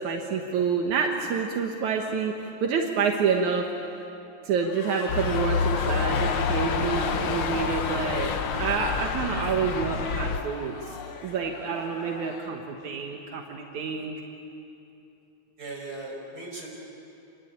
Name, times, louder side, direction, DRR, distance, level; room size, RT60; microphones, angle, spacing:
voice 1, 0.0-2.3 2.6-3.7 4.4-8.3 8.6-11.0 11.2-14.2, right 6 dB, 75° right, 2 dB, 2.7 m, -28 dB
sound 1, 4.6-12.7 12.9-13.0, left 5 dB, 55° left, 1.9 m, -33 dB
sound 2, 5.1-10.4, left 6 dB, 70° left, 1.1 m, -30 dB
voice 2, 15.6-16.7, right 2 dB, 30° right, -1 dB, 6.0 m, -38 dB
28.0 x 22.5 x 8.7 m, 2.8 s
omnidirectional pair, 3.4 m